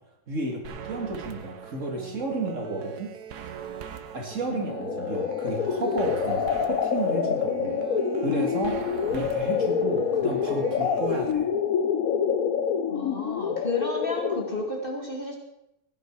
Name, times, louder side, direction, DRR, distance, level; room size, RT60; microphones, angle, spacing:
voice 1, 0.3-3.1 4.1-7.8 8.2-8.8 9.1-11.5, right 2 dB, 45° right, 1 dB, 2.5 m, -32 dB
sound 1, 0.6-11.3, right 7 dB, 70° right, 1.5 m, -40 dB
voice 2, 4.5-4.8 12.9-15.4, left 2 dB, 30° left, 0 dB, 2.3 m, -32 dB
sound 2, 4.7-14.7, left 7 dB, 60° left, 1.2 m, -27 dB
16.0 x 10.5 x 4.6 m, 0.88 s
omnidirectional pair, 1.8 m